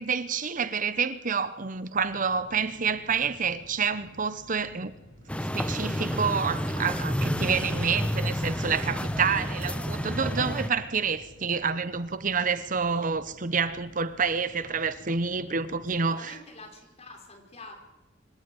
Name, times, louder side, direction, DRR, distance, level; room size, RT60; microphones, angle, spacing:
voice 1, 0.0-4.9 5.5-16.4, right 5 dB, 45° right, 0.9 m, -28 dB
sound 1, 1.9-16.0, equal, 70° left, 7.5 m, -53 dB
sound 2, 5.3-10.7, equal, 5° left, 1.1 m, -30 dB
voice 2, 16.1-17.7, left 2 dB, 35° left, 5.1 m, -47 dB
25.5 x 13.5 x 9.7 m
head